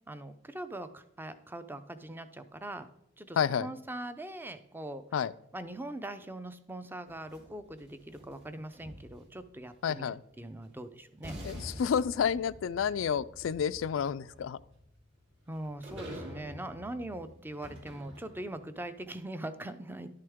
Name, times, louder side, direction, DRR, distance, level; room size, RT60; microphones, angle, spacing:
voice 1, 0.1-2.9 3.2-5.0 5.5-11.3 15.5-20.1, right 1 dB, 10° right, 11 dB, 0.5 m, -41 dB
voice 2, 3.4-3.7 5.1-5.3 9.8-10.2 11.4-14.6, left 7 dB, 75° left, 18 dB, 0.3 m, -30 dB
sound 1, 7.1-9.4 10.7-10.8 11.2-18.7, equal, 60° right, 3.4 m, -47 dB
11.5 x 6.6 x 3.5 m, 0.78 s
head